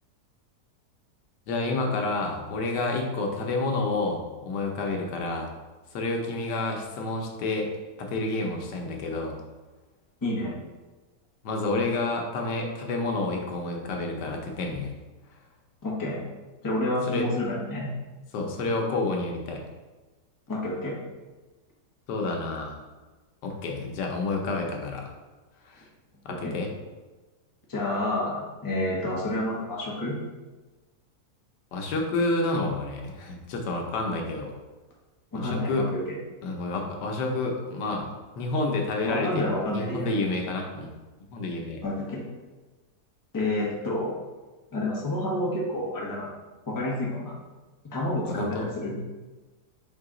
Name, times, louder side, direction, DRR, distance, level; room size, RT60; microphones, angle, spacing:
voice 1, 1.5-5.5 5.9-7.7 8.0-9.3 11.4-14.9 17.1-17.3 18.3-19.6 22.1-22.8 23.4-25.0 25.7-25.8 26.2-26.7 31.7-34.5 35.3-35.9 36.4-38.1 38.4-40.9 41.3-41.8 48.2-48.7, left 2 dB, 90° left, 1 dB, 1.3 m, -29 dB
voice 2, 10.2-10.6 15.8-16.2 16.6-17.9 20.5-21.0 26.3-26.5 27.7-30.2 35.3-36.2 39.0-40.1 41.8-42.3 43.3-44.2 44.7-46.3 46.7-47.4 47.8-49.0, left 1 dB, 20° left, -4 dB, 0.6 m, -29 dB
4.7 x 2.8 x 3.6 m, 1.2 s
omnidirectional pair, 1.8 m